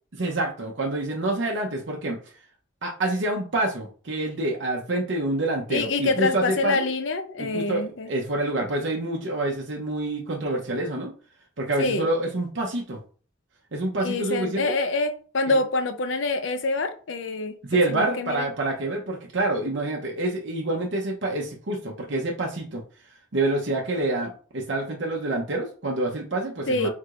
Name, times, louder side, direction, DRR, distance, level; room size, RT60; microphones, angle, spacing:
voice 1, 0.1-2.2 2.8-6.9 7.4-11.1 11.6-13.0 13.7-14.7 15.5-15.6 17.7-22.8 23.3-26.9, right 2 dB, 70° right, 0.8 m, -27 dB
voice 2, 5.7-8.1 11.8-12.1 14.0-18.5 26.7-26.9, left 3 dB, 80° left, 0.6 m, -26 dB
4.7 x 3.7 x 2.5 m
head